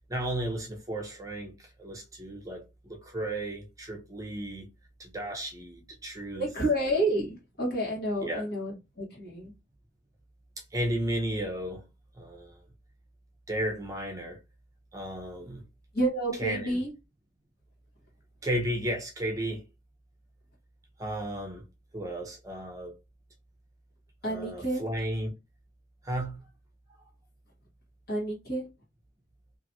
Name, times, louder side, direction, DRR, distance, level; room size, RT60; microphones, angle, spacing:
voice 1, 0.1-4.7 5.0-6.5 8.2-8.4 10.7-11.8 12.2-12.6 13.5-14.4 14.9-15.6 16.4-16.8 18.4-19.6 21.0-21.6 21.9-23.0 24.2-25.3 26.0-26.4, right 1 dB, 20° right, 0.6 m, -34 dB
voice 2, 6.3-9.5 15.9-16.9 24.2-24.8 28.1-28.6, right 1 dB, 55° left, 1.4 m, -29 dB
2.9 x 2.5 x 2.7 m
head